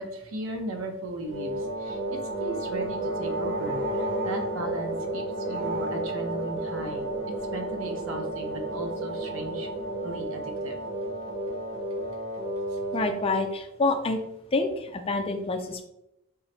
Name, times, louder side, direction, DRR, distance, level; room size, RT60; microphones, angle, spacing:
voice 1, 0.0-3.8 4.2-7.1 7.5-9.7 10.0-10.8, right 1 dB, 75° right, 3 dB, 0.7 m, -36 dB
sound 1, 1.3-13.5, right 1 dB, 45° right, 0.9 m, -32 dB
voice 2, 12.9-14.2 14.5-15.8, left 3 dB, 25° left, 5 dB, 0.4 m, -27 dB
3.7 x 2.1 x 4.2 m, 0.86 s
head